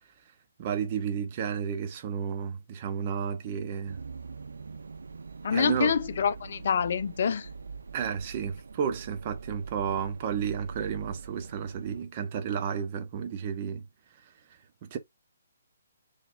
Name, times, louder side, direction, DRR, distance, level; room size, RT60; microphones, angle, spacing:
voice 1, 0.6-4.0 5.5-5.9 7.9-13.9 14.8-15.0, right 7 dB, 35° right, 0.8 m, -32 dB
sound 1, 3.9-12.0, right 5 dB, 75° right, 0.4 m, -43 dB
voice 2, 5.4-7.5, left 7 dB, 55° left, 0.4 m, -26 dB
4.0 x 3.2 x 2.4 m
figure-of-eight pair, 140°, 0 cm